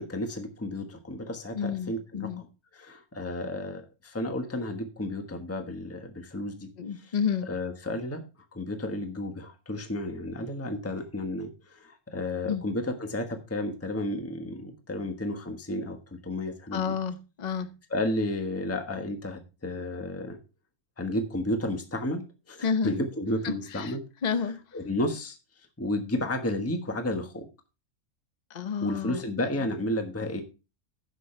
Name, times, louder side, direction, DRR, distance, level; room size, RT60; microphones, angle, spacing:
voice 1, 0.0-2.5 2.7-6.7 6.9-7.1 7.4-8.2 8.5-16.0 16.2-16.9 17.9-20.4 21.0-24.0 24.3-25.4 25.8-27.5 28.8-30.4, left 1 dB, 10° left, 1.2 m, -32 dB
voice 2, 1.5-2.4 6.8-7.5 12.5-12.6 16.7-17.7 22.6-22.9 23.4-23.9 24.2-24.6 28.5-29.2, left 6 dB, 35° left, 0.8 m, -30 dB
15.5 x 6.4 x 3.2 m
omnidirectional pair, 1.5 m